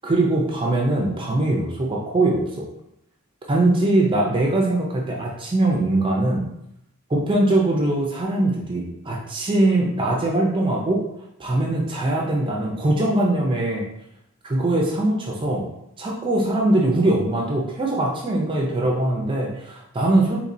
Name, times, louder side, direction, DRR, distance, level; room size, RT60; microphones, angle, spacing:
voice 1, 0.0-2.7 3.5-6.5 7.1-11.0 11.4-13.8 14.4-15.7 16.0-20.4, right 2 dB, 25° right, -1 dB, 0.4 m, -21 dB
4.2 x 2.9 x 2.5 m, 0.79 s
head